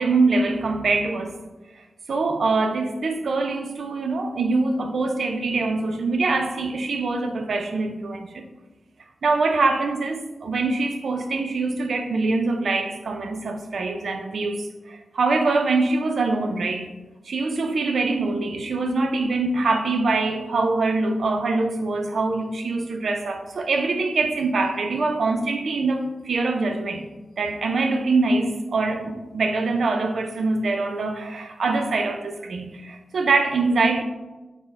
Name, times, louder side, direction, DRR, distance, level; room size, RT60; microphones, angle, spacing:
voice 1, 0.0-1.3 2.1-8.4 9.2-16.9 17.3-27.1 27.4-34.0, right 3 dB, 60° right, 0.4 m, -24 dB
4.2 x 2.1 x 4.3 m
wide cardioid pair, 140°, 0 cm